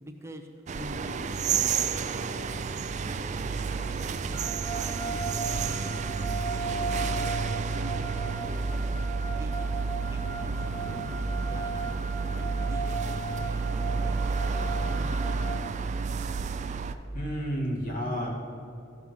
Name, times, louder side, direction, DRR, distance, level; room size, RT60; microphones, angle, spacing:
voice 1, 0.0-0.5 0.8-1.2 1.5-4.4 4.8-6.1 6.5-8.8 9.4-9.7 10.0-15.6, equal, 15° right, 3 dB, 0.8 m, -47 dB
sound 1, 0.7-17.0, right 4 dB, 35° right, 0.3 m, -30 dB
sound 2, 4.3-15.7, right 3 dB, 15° left, 1.0 m, -37 dB
voice 2, 17.1-18.3, equal, 40° left, -3 dB, 2.0 m, -31 dB
14.0 x 4.8 x 5.5 m, 2.8 s
head